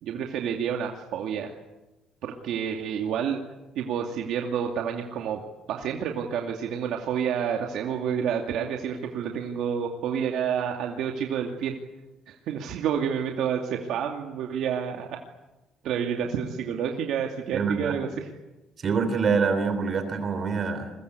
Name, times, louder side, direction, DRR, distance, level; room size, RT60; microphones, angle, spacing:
voice 1, 0.0-1.5 2.2-3.4 3.8-5.4 5.7-11.7 12.3-15.2 15.8-18.3, right 8 dB, 70° right, 2 dB, 2.4 m, -29 dB
voice 2, 17.5-18.0 18.8-20.9, right 5 dB, 35° right, 9 dB, 3.4 m, -25 dB
30.0 x 22.5 x 8.3 m, 1.0 s
cardioid pair, 160°, 0 cm